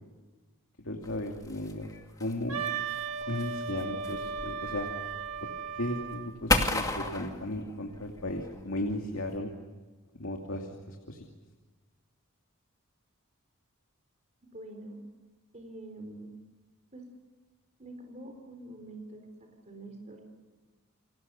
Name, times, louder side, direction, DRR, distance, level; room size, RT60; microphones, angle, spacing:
voice 1, 0.8-1.9 2.2-2.6 3.3-4.9 5.4-5.5 5.7-9.5 10.2-11.2, left 1 dB, 65° left, 2 dB, 2.6 m, -35 dB
sound 1, 1.0-9.4, left 2 dB, 15° left, 2.4 m, -35 dB
Wind instrument woodwind instrument, 2.5-6.3, right 6 dB, 80° right, 2.0 m, -36 dB
voice 2, 14.5-15.0 15.5-16.3 16.9-17.0 17.8-20.2, right 1 dB, 35° right, 4 dB, 4.0 m, -45 dB
29.5 x 24.5 x 6.9 m, 1.3 s
head